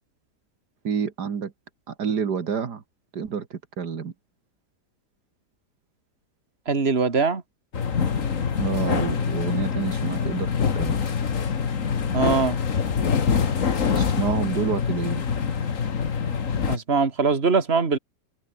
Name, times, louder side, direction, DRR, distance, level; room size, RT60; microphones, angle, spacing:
voice 1, 0.8-1.5 1.9-2.8 3.1-4.1 8.6-11.0 14.0-15.3, right 6 dB, 80° right, 2.4 m, -28 dB
voice 2, 6.7-7.4 12.1-12.6 16.7-18.0, right 4 dB, 40° right, 2.5 m, -22 dB
sound 1, 7.7-16.8, left 6 dB, 50° left, 1.9 m, -25 dB
omnidirectional pair, 1.8 m